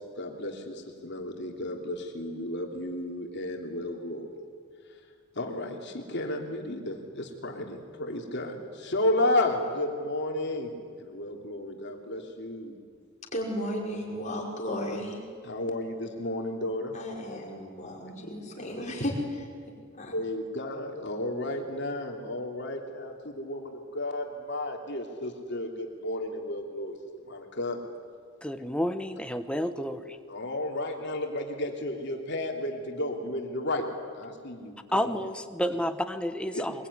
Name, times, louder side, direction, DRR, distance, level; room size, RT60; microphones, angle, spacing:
voice 1, 0.2-0.7 1.0-4.3 5.4-10.7 11.0-12.7 15.4-16.9 20.1-26.9 27.3-27.8 30.3-33.8 34.2-35.3 36.5-36.6, left 1 dB, 55° left, 2 dB, 3.1 m, -32 dB
voice 2, 13.3-15.2 16.9-19.5 20.0-20.1, equal, 35° left, -2 dB, 5.4 m, -34 dB
voice 3, 28.4-30.2 34.9-36.7, equal, 5° left, 8 dB, 1.2 m, -30 dB
24.0 x 22.5 x 9.9 m, 2.1 s
head